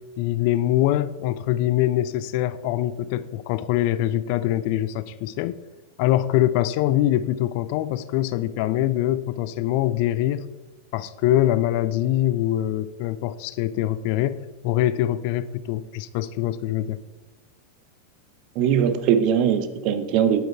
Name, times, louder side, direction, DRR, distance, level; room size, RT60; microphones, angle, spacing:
voice 1, 0.2-5.6 6.0-10.5 10.9-14.4 14.6-17.0, left 13 dB, 45° left, 15 dB, 0.4 m, -23 dB
voice 2, 18.6-20.5, right 8 dB, 40° right, 11 dB, 0.9 m, -21 dB
9.1 x 9.0 x 4.3 m, 1.2 s
figure-of-eight pair, 90°, 0 cm